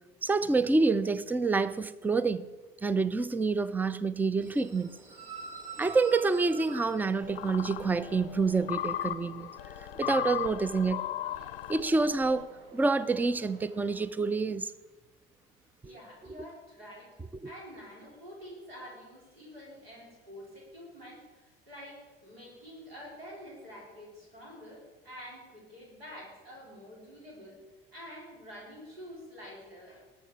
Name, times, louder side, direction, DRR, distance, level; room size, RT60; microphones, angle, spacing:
voice 1, 0.2-2.5 2.8-5.0 5.8-9.5 10.0-11.1 11.7-14.7 15.8-15.9 17.4-17.5, right 3 dB, 5° right, 0.4 m, -27 dB
sound 1, 4.4-14.0, right 4 dB, 60° right, 2.0 m, -49 dB
sound 2, 7.2-12.5, left 12 dB, 70° left, 0.6 m, -37 dB
voice 2, 15.8-27.6 27.9-30.0, equal, 80° right, 3.9 m, -48 dB
19.5 x 7.2 x 4.7 m
figure-of-eight pair, 65°, 30 cm